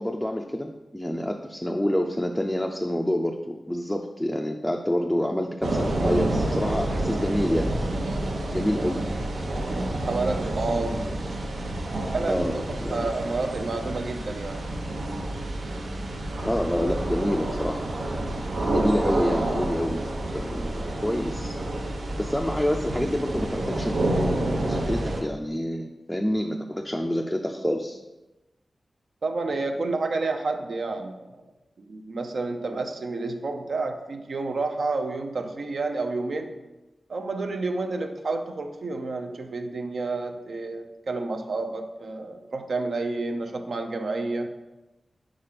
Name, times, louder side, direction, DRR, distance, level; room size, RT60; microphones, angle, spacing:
voice 1, 0.0-7.7 8.5-9.1 12.3-13.1 16.4-17.8 18.7-20.1 20.3-21.6 22.2-28.0, equal, 5° left, 3 dB, 0.4 m, -27 dB
sound 1, 5.6-25.2, right 1 dB, 85° right, 1.0 m, -29 dB
voice 2, 9.6-11.2 12.1-14.7 29.2-31.4 31.8-36.5 37.1-44.5, right 3 dB, 65° right, 5 dB, 0.6 m, -30 dB
5.0 x 4.8 x 5.8 m, 1.1 s
wide cardioid pair, 130°, 0 cm